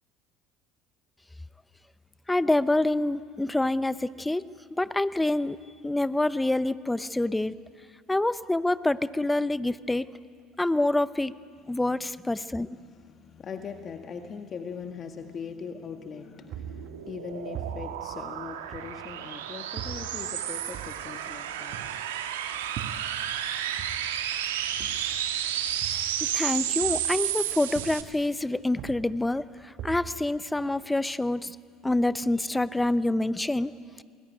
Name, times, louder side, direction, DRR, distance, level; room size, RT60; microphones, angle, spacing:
voice 1, 2.3-4.4 4.7-5.6 5.8-7.5 8.1-10.1 10.6-11.3 11.7-12.7 26.2-31.6 31.8-34.0, left 2 dB, 10° left, 16 dB, 0.8 m, -26 dB
voice 2, 11.7-12.1 12.6-22.0 23.3-23.4, left 6 dB, 40° left, 5 dB, 1.7 m, -41 dB
sound 1, 16.2-28.0, right 10 dB, 80° right, 1.6 m, -32 dB
sound 2, 16.5-19.3 19.8-23.5 23.8-27.4 27.8-28.3 28.7-31.0, right 8 dB, 55° right, 1.3 m, -42 dB
28.5 x 20.5 x 9.2 m, 2.1 s
hypercardioid pair, 65°, 0 cm